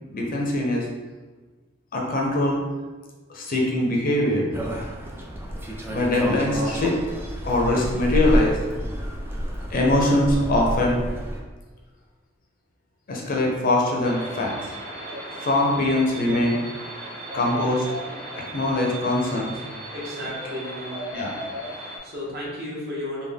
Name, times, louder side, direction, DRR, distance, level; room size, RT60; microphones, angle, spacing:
voice 1, 0.1-0.9 1.9-2.6 3.3-4.5 5.9-7.0 7.4-8.6 9.7-11.0 13.1-14.7 15.4-16.6 17.3-17.8 18.3-19.5 21.1-21.3, left 1 dB, 45° left, -1 dB, 0.6 m, -22 dB
sound 1, 4.5-11.4, equal, 10° right, 0.4 m, -29 dB
sound 2, 14.0-22.0, right 1 dB, 30° right, 1.2 m, -36 dB
voice 2, 19.9-21.0 21.8-23.3, left 1 dB, 55° right, -6 dB, 1.1 m, -33 dB
3.5 x 2.3 x 3.6 m, 1.3 s
head